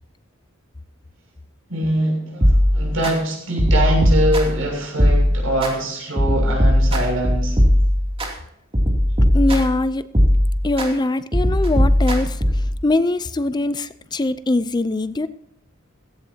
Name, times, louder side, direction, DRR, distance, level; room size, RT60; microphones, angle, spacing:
voice 1, 1.7-7.6, right 1 dB, 75° right, 0 dB, 7.2 m, -23 dB
sound 1, 2.4-3.1 3.6-4.6 5.0-5.7 6.2-8.3 8.7-9.8 10.1-10.9 11.3-12.7, equal, 25° right, 2.8 m, -18 dB
voice 2, 9.3-10.1 10.6-15.3, left 2 dB, 20° left, 13 dB, 0.5 m, -22 dB
16.5 x 16.5 x 2.9 m, 0.73 s
head